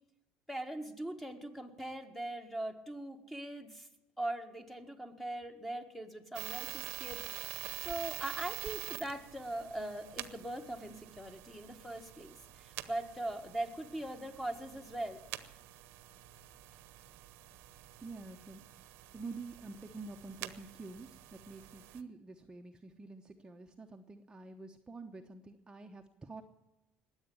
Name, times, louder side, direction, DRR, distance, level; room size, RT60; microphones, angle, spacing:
voice 1, 0.5-3.9 4.2-7.2 7.8-15.2, right 1 dB, 5° left, 6 dB, 1.7 m, -41 dB
sound 1, 6.3-22.0, right 15 dB, 80° right, 1.0 m, -47 dB
voice 2, 18.0-18.6 19.1-26.4, right 3 dB, 20° right, 3 dB, 1.0 m, -48 dB
20.5 x 8.2 x 8.6 m, 0.93 s
cardioid pair, 115°, 4 cm